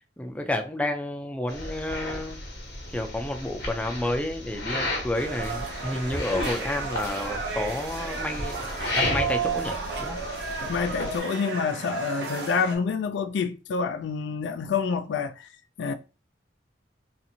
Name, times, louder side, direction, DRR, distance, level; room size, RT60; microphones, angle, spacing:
voice 1, 0.2-2.4 2.9-8.7 8.9-10.2, left 1 dB, 10° left, 0.3 m, -30 dB
sound 1, 1.5-11.2, left 1 dB, 65° left, 0.9 m, -33 dB
sound 2, 5.1-12.8, right 5 dB, 65° right, 0.8 m, -33 dB
voice 2, 10.6-15.5 15.8-15.9, left 5 dB, 85° left, 0.3 m, -28 dB
2.6 x 2.5 x 2.7 m
head